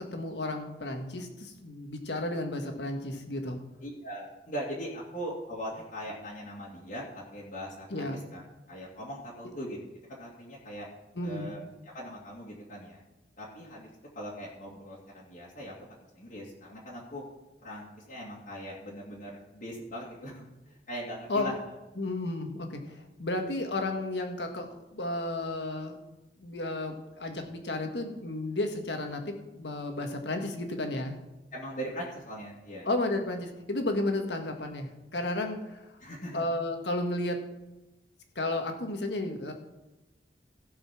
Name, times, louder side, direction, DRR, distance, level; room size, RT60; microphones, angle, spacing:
voice 1, 0.0-3.6 7.9-8.2 11.2-11.5 21.3-21.5 22.0-26.0 26.4-31.2 32.8-35.9 36.3-37.4 38.4-39.5, left 2 dB, 65° left, 4 dB, 1.7 m, -33 dB
voice 2, 3.8-8.4 8.7-9.8 10.1-10.9 11.2-11.6 11.9-13.0 13.4-15.7 16.1-17.2 17.6-21.5 31.5-32.9 36.0-36.5, equal, 45° left, -6 dB, 2.3 m, -40 dB
16.0 x 5.6 x 6.0 m, 1.0 s
head